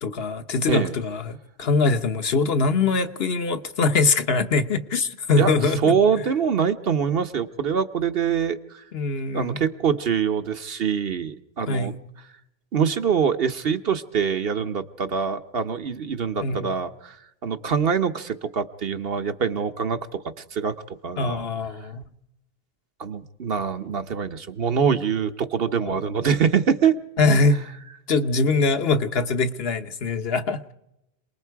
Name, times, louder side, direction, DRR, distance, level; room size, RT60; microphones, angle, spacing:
voice 1, 0.0-6.0 8.9-9.6 11.7-12.0 16.4-16.8 21.2-22.0 25.8-26.0 27.2-27.6 28.1-30.7, left 3 dB, 75° left, 9 dB, 1.3 m, -23 dB
voice 2, 5.4-8.8 9.3-11.9 12.7-17.2 17.4-20.2 20.5-20.7 21.0-21.4 23.0-26.9, right 7 dB, 70° right, 9 dB, 1.3 m, -24 dB
27.5 x 20.5 x 4.7 m, 0.83 s
omnidirectional pair, 1.0 m